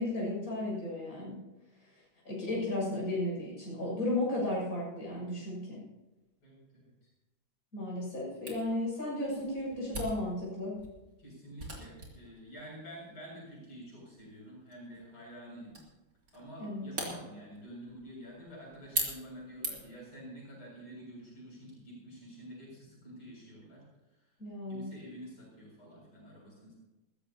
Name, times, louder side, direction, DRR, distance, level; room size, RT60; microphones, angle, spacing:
voice 1, 0.0-1.4 2.3-5.9 7.7-10.8 16.6-16.9 24.4-24.9, left 1 dB, 40° left, -4 dB, 7.4 m, -34 dB
voice 2, 6.4-6.9 11.2-15.8 16.3-23.8 24.7-26.7, equal, 80° left, -4 dB, 7.9 m, -48 dB
Camera, 8.5-20.1, right 2 dB, 40° right, 3.7 m, -43 dB
21.0 x 15.5 x 2.9 m, 1.0 s
omnidirectional pair, 2.2 m